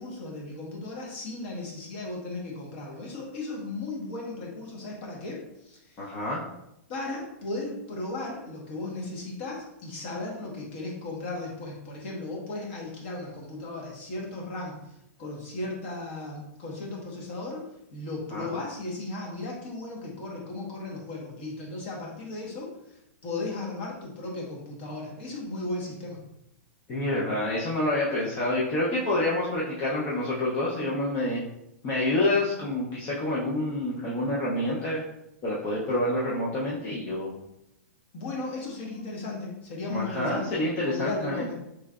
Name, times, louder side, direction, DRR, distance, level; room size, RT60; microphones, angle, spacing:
voice 1, 0.0-6.1 6.9-17.6 17.9-26.2 38.1-41.5, left 2 dB, 45° left, -2 dB, 1.0 m, -36 dB
voice 2, 6.0-6.4 18.3-18.5 26.9-31.4 31.8-35.0 35.4-37.3 39.9-41.5, left 1 dB, 25° left, -6 dB, 0.5 m, -27 dB
3.7 x 3.1 x 2.3 m, 0.84 s
hypercardioid pair, 160°, 8 cm